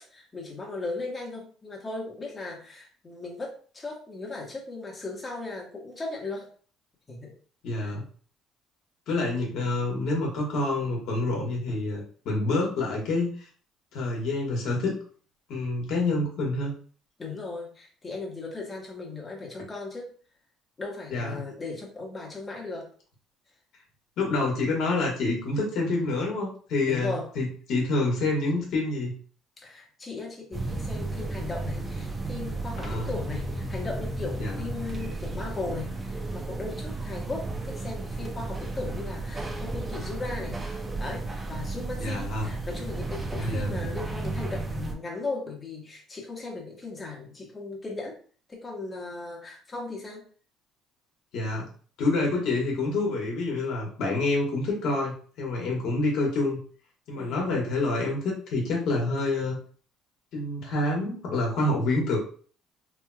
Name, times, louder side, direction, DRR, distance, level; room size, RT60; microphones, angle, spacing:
voice 1, 0.1-6.5 7.1-7.3 7.8-7.9 17.2-20.1 20.8-22.9 26.9-27.3 29.6-40.7 41.0-48.2 48.5-50.3 57.1-57.4, left 3 dB, 25° left, -1 dB, 1.1 m, -37 dB
voice 2, 7.6-8.0 9.1-13.3 13.9-15.0 15.5-16.7 21.1-21.4 24.2-29.1 32.8-33.1 34.4-34.6 42.0-42.5 43.4-43.7 51.3-51.7 52.0-56.6 57.1-59.6 60.3-62.2, left 2 dB, 70° left, -1 dB, 1.4 m, -27 dB
sound 1, 30.5-44.9, right 2 dB, 20° right, 0.6 m, -33 dB
3.3 x 3.0 x 2.3 m, 0.43 s
cardioid pair, 95°, 0 cm